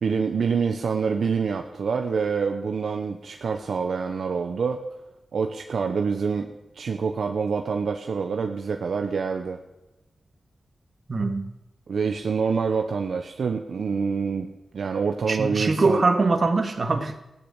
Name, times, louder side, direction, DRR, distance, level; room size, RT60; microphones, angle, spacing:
voice 1, 0.0-4.8 5.3-9.6 11.9-14.5 14.7-16.0, right 5 dB, 75° right, 5 dB, 1.0 m, -26 dB
voice 2, 11.1-11.5 15.3-17.2, right 3 dB, 50° right, 6 dB, 2.0 m, -22 dB
15.5 x 10.5 x 8.3 m, 0.95 s
cardioid pair, 70°, 0 cm